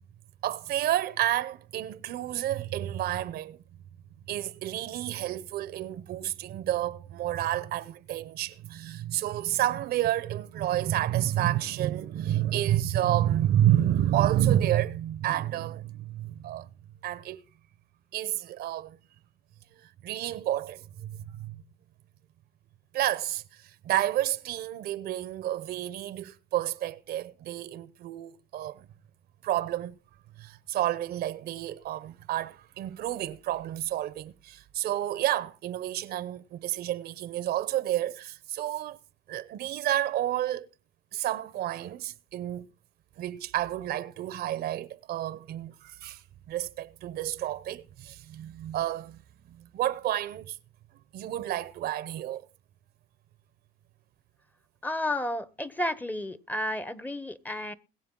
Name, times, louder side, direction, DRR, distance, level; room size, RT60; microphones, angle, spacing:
voice 1, 0.4-3.6 4.3-16.7 17.0-17.4 18.1-19.0 20.0-21.5 22.9-23.4 23.8-28.9 29.4-30.0 30.4-39.0 39.3-40.7 41.1-42.7 43.2-46.2 46.5-49.2 49.5-50.6 51.1-52.4, right 12 dB, 70° right, 0.8 m, -30 dB
voice 2, 54.8-57.7, left 1 dB, 10° left, 0.8 m, -32 dB
21.5 x 7.7 x 3.7 m
cardioid pair, 110°, 17 cm